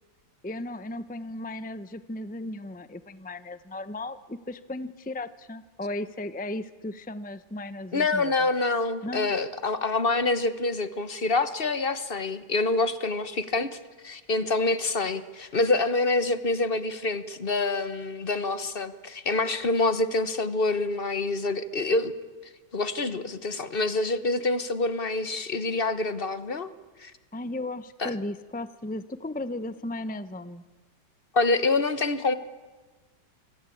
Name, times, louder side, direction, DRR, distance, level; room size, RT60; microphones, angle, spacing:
voice 1, 0.4-8.5 9.0-9.3 27.3-30.6, left 1 dB, 15° left, 13 dB, 0.3 m, -35 dB
voice 2, 7.9-13.8 14.0-22.1 22.7-26.7 27.0-27.1 28.0-28.1 31.3-32.3, left 3 dB, 35° left, 13 dB, 1.1 m, -26 dB
27.0 x 25.0 x 8.6 m, 1.3 s
omnidirectional pair, 1.9 m